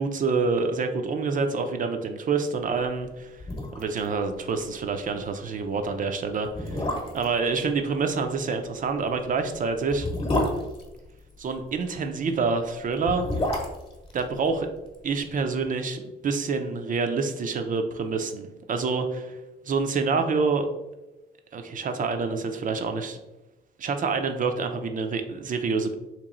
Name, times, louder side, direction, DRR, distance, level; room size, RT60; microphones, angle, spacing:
voice 1, 0.0-3.4 3.8-10.1 11.4-13.3 14.1-14.7 15.0-19.4 19.7-20.7 21.5-23.2 23.8-25.9, right 4 dB, 45° right, 6 dB, 0.4 m, -27 dB
sound 1, 3.0-3.1 3.4-4.1 4.3-4.4 4.8-5.0 5.7-5.8 6.4-7.4 8.9-11.6 12.8-15.1 15.3-15.4, left 1 dB, 30° left, 1.0 m, -29 dB
3.0 x 2.9 x 3.7 m, 1.0 s
cardioid pair, 90°, 20 cm